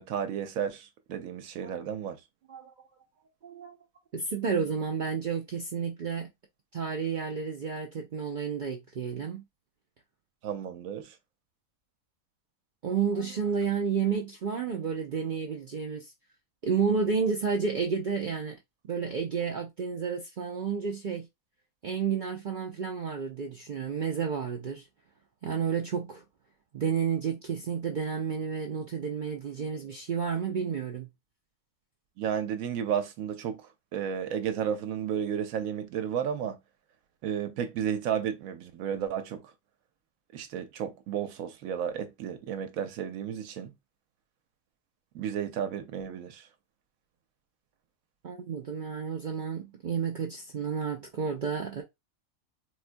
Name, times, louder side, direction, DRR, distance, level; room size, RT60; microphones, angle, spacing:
voice 1, 0.0-2.2 10.4-11.2 32.2-36.6 37.2-39.5 40.3-43.7 45.1-46.5, right 8 dB, 80° right, 1.0 m, -33 dB
voice 2, 3.4-3.8 4.1-6.3 6.7-9.4 12.8-16.1 16.6-18.6 18.9-21.3 21.8-24.8 25.4-26.2 26.7-31.1 48.2-51.8, right 6 dB, 65° right, 0.5 m, -31 dB
4.2 x 2.2 x 2.5 m
omnidirectional pair, 1.4 m